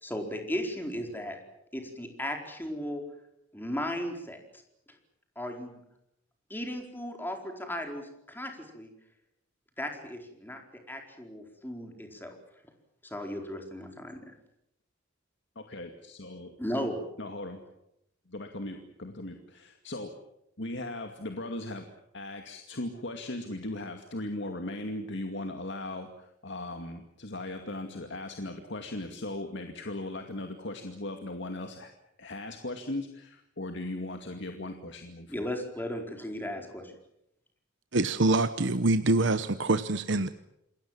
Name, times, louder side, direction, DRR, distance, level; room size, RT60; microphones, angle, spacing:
voice 1, 0.0-1.4 1.7-3.0 3.5-4.6 5.4-5.7 6.5-8.9 9.8-10.6 10.9-12.4 13.0-14.1 16.6-17.0 35.3-37.0, equal, 10° left, 3 dB, 4.4 m, -36 dB
voice 2, 15.6-16.6 17.2-17.6 18.3-20.1 20.6-21.9 22.1-31.9 32.2-35.5 36.5-36.6, left 2 dB, 65° left, 5 dB, 2.3 m, -38 dB
voice 3, 37.9-40.3, right 2 dB, 70° right, 11 dB, 1.0 m, -25 dB
28.0 x 21.5 x 7.5 m, 0.80 s
head